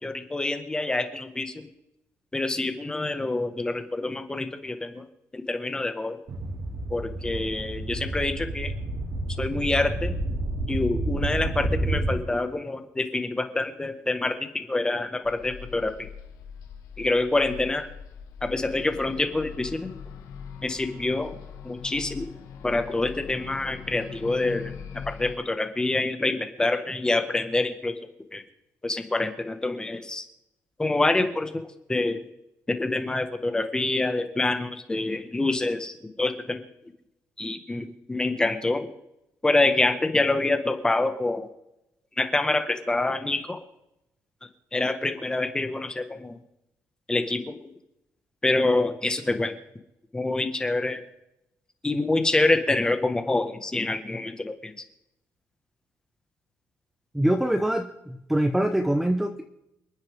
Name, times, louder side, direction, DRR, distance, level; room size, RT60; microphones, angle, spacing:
voice 1, 0.0-1.7 2.3-5.1 5.3-6.2 6.9-8.7 9.4-10.2 10.7-16.1 17.0-17.9 18.4-19.9 20.6-21.4 21.6-22.3 22.6-27.9 28.3-28.4 28.8-30.2 30.8-32.2 32.7-36.6 37.4-38.9 39.4-41.5 42.2-43.6 44.7-46.4 47.1-47.6 48.4-49.5 50.1-51.0 51.8-54.7, left 2 dB, 15° left, 7 dB, 1.6 m, -26 dB
sound 1, 6.3-12.2, right 2 dB, 50° right, 2.7 m, -30 dB
sound 2, 15.2-25.4, left 7 dB, 80° left, 2.0 m, -41 dB
voice 2, 57.1-59.4, right 1 dB, 5° right, 5 dB, 0.9 m, -24 dB
28.0 x 9.7 x 3.7 m, 0.86 s
cardioid pair, 130°, 6 cm